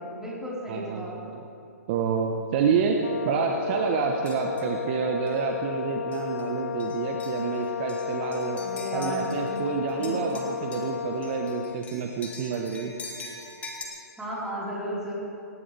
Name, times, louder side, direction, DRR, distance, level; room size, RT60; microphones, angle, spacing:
voice 1, 0.0-1.3 8.5-9.5 9.8-10.2 14.2-15.1, right 1 dB, 5° right, -7 dB, 4.4 m, -34 dB
voice 2, 0.7-1.4 1.9-8.6 8.9-12.9, right 6 dB, 40° right, 2 dB, 1.1 m, -28 dB
Brass instrument, 3.0-11.9, left 8 dB, 60° left, 0.9 m, -33 dB
sound 1, 4.2-4.8 5.3-5.4 6.1-6.5 6.8-9.6 9.9-13.8, left 3 dB, 15° left, 1.9 m, -44 dB
19.5 x 17.5 x 3.4 m, 2.8 s
figure-of-eight pair, 130°, 9 cm